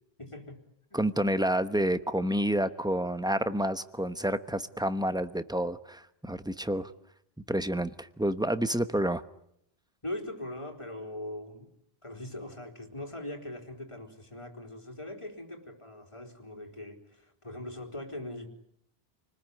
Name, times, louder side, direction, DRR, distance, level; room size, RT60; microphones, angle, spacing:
voice 1, 0.2-0.6 0.9-1.0 10.0-11.7 12.0-18.5, left 1 dB, 30° left, 2 dB, 3.8 m, -41 dB
voice 2, 0.9-6.9 7.5-9.2, right 1 dB, 5° right, 11 dB, 1.0 m, -29 dB
29.0 x 20.0 x 9.6 m, 0.76 s
omnidirectional pair, 1.1 m